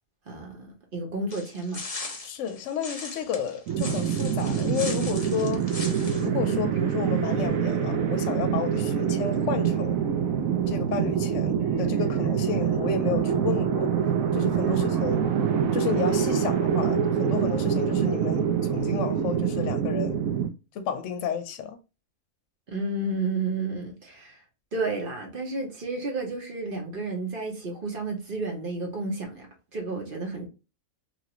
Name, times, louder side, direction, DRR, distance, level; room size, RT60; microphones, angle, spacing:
voice 1, 0.3-1.8 14.7-14.9 22.7-24.4 24.7-29.5 29.7-30.5, right 3 dB, 45° right, 0.9 m, -31 dB
sound 1, 1.3-6.3, left 3 dB, 35° left, 0.6 m, -39 dB
voice 2, 2.2-5.7 6.2-10.0 10.7-13.9 14.3-15.2 15.7-20.2 20.7-21.8, left 7 dB, 70° left, 0.8 m, -32 dB
sound 2, 3.7-20.5, right 8 dB, 75° right, 1.0 m, -25 dB
sound 3, 11.6-18.0, left 1 dB, ahead, 1.2 m, -47 dB
2.9 x 2.5 x 2.9 m
omnidirectional pair, 1.5 m